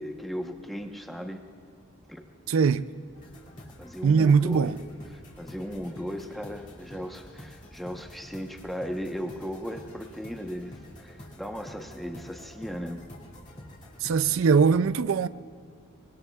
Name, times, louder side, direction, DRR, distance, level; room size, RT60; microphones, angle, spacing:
voice 1, 0.0-1.4 2.1-2.2 3.8-4.7 5.1-10.7 11.0-13.0, equal, ahead, 1.0 m, -36 dB
voice 2, 2.5-2.9 4.0-4.8 14.0-15.3, right 5 dB, 80° right, 0.4 m, -21 dB
sound 1, 3.1-14.8, left 1 dB, 40° left, 2.6 m, -47 dB
24.5 x 22.0 x 2.4 m
head